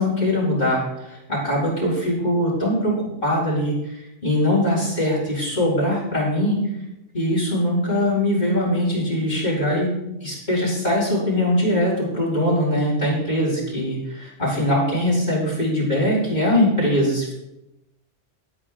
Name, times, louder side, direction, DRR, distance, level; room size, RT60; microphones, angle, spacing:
voice 1, 0.0-6.6 7.1-17.4, left 1 dB, 55° left, -6 dB, 5.1 m, -22 dB
21.5 x 8.7 x 2.5 m, 0.88 s
omnidirectional pair, 1.1 m